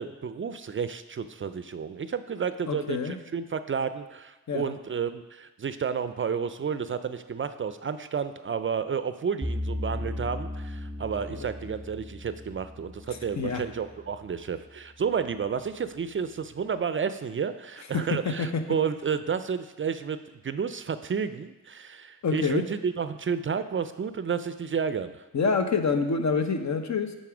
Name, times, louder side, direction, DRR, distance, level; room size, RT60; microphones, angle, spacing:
voice 1, 0.0-20.2 20.4-25.2, right 6 dB, 40° right, 12 dB, 0.4 m, -31 dB
voice 2, 2.7-3.2 4.5-4.8 11.3-11.5 13.4-13.6 17.9-18.8 22.2-22.6 25.3-27.1, left 5 dB, 60° left, 7 dB, 0.8 m, -27 dB
sound 1, 9.4-14.5, left 1 dB, 5° left, 1.1 m, -36 dB
9.2 x 4.1 x 4.9 m, 1.1 s
cardioid pair, 75°, 32 cm